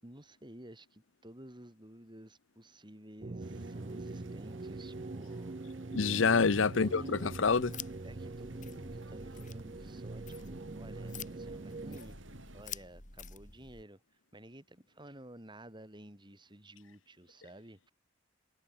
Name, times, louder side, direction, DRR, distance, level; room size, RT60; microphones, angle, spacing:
voice 1, 0.0-5.8 6.6-7.3 8.0-17.9, right 1 dB, 25° right, 7.0 m, -53 dB
sound 1, 3.2-12.0, right 3 dB, 40° right, 0.6 m, -43 dB
sound 2, 3.4-12.6, right 1 dB, 80° right, 6.0 m, -52 dB
voice 2, 5.9-7.7, left 5 dB, 85° left, 0.8 m, -27 dB
sound 3, 7.3-13.8, left 7 dB, 40° left, 6.7 m, -49 dB
head